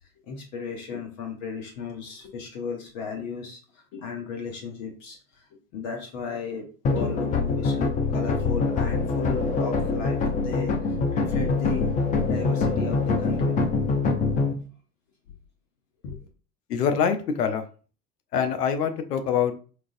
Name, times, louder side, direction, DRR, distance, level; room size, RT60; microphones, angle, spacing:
voice 1, 0.2-5.4 5.7-11.9 12.3-13.6 16.0-16.2, left 5 dB, 55° left, 2 dB, 1.0 m, -35 dB
sound 1, 6.8-14.5, left 4 dB, 20° left, 0.3 m, -24 dB
voice 2, 16.7-17.6 18.3-19.5, left 7 dB, 75° left, 8 dB, 0.7 m, -24 dB
4.6 x 2.4 x 2.5 m, 0.39 s
figure-of-eight pair, 80°, 47 cm